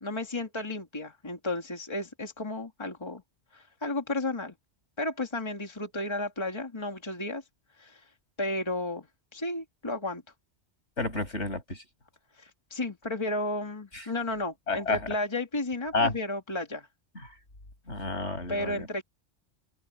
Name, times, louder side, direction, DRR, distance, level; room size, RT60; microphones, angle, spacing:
voice 1, 0.0-3.2 3.5-4.5 5.0-7.4 7.8-8.0 8.4-9.1 9.3-10.2 12.4-16.9 18.5-19.0, left 2 dB, 25° left, 2.2 m, -33 dB
voice 2, 11.0-11.8 13.9-14.0 14.7-15.1 15.9-16.1 17.9-18.9, left 3 dB, 75° left, 6.7 m, -30 dB
open air
omnidirectional pair, 1.2 m